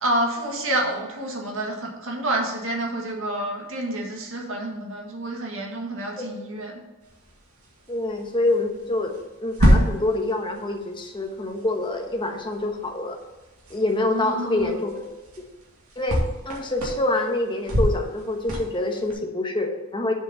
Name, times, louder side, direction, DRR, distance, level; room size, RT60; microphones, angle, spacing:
voice 1, 0.0-6.8 14.1-14.8, right 1 dB, 65° right, 0 dB, 1.9 m, -28 dB
sound 1, 7.0-19.1, equal, 80° right, 2.4 m, -28 dB
voice 2, 7.9-9.1 9.4-13.2 13.7-15.0 16.0-16.2 16.5-20.1, left 2 dB, 25° left, 2 dB, 1.2 m, -26 dB
7.2 x 5.4 x 7.0 m, 1.1 s
head